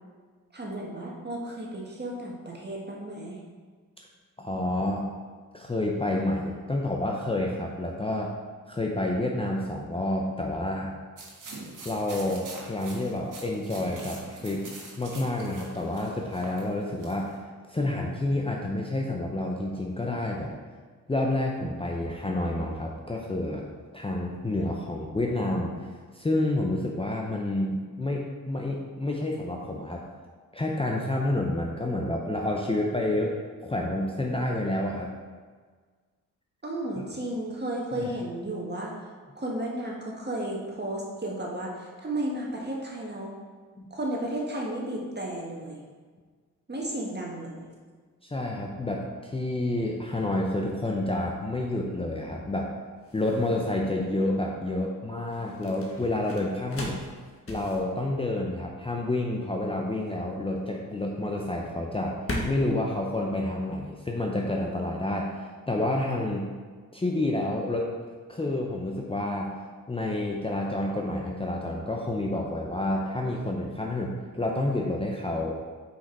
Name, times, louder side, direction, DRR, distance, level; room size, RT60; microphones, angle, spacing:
voice 1, 0.5-3.4 36.6-38.9 39.3-43.3 43.9-45.8 46.7-47.7, right 1 dB, 30° right, -2 dB, 1.7 m, -33 dB
voice 2, 4.4-5.1 5.5-8.3 8.7-10.9 11.8-14.6 15.0-17.4 17.7-20.5 21.1-23.7 23.9-25.9 26.1-30.1 30.5-33.3 33.6-35.1 37.0-37.1 37.9-38.1 43.8-43.9 48.2-52.7 53.1-57.0 57.5-62.2 62.5-66.5 66.9-67.9 68.3-69.5 69.9-75.5, left 1 dB, 15° left, -1 dB, 0.7 m, -29 dB
sound 1, 11.2-17.3, right 2 dB, 60° right, 1.5 m, -44 dB
sound 2, 51.5-64.1, left 1 dB, 40° left, 1.4 m, -41 dB
5.3 x 5.0 x 4.0 m, 1.5 s
supercardioid pair, 50°, 35 cm